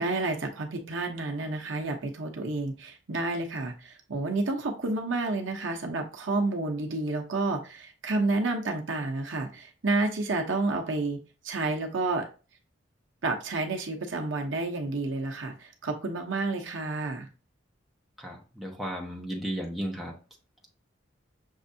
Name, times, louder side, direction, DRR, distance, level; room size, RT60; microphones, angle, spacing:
voice 1, 0.0-11.2 11.4-12.3 13.2-17.3, right 2 dB, 70° right, 3 dB, 0.8 m, -30 dB
voice 2, 18.2-20.2, equal, ahead, -2 dB, 0.8 m, -34 dB
6.4 x 2.6 x 2.7 m, 0.33 s
head